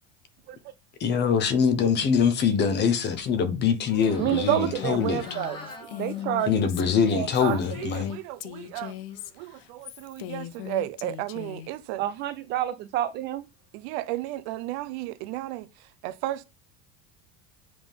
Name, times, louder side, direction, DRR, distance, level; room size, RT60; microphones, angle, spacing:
voice 1, 1.0-5.3 6.5-8.1, left 6 dB, 30° left, 1.0 m, -23 dB
sound 1, 3.8-8.2 8.6-9.3, left 1 dB, 15° left, 1.9 m, -44 dB
voice 2, 4.2-5.6 6.0-6.7 7.1-7.6 12.0-13.4, right 13 dB, 30° right, 0.4 m, -28 dB
Female speech woman speaking, 4.7-11.7, left 12 dB, 55° left, 0.9 m, -39 dB
voice 3, 7.4-8.9 9.4-12.0 13.7-15.7 16.0-16.4, right 15 dB, 65° right, 0.8 m, -34 dB
7.9 x 3.8 x 5.2 m
cardioid pair, 165°, 35 cm